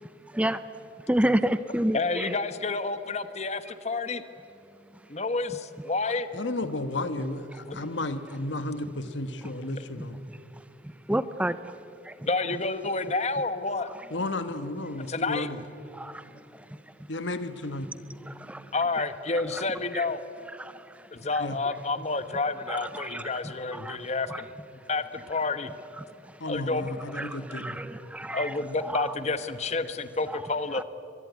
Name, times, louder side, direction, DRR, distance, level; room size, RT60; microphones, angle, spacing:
voice 1, 1.1-2.3 11.1-11.5 19.9-20.0 22.7-22.8 27.2-27.3 27.6-27.7 28.3-28.4 28.9-29.0, right 1 dB, 5° right, 14 dB, 0.5 m, -25 dB
voice 2, 1.9-4.2 5.1-6.3 12.2-13.9 15.1-15.5 18.7-20.2 21.1-24.5 24.9-25.7 26.5-27.0 28.3-30.8, left 3 dB, 35° left, 12 dB, 1.1 m, -29 dB
voice 3, 6.3-10.2 14.1-15.6 17.1-17.9 21.4-21.6 26.4-27.8, left 2 dB, 75° left, 11 dB, 1.4 m, -33 dB
23.0 x 23.0 x 9.4 m, 2.8 s
head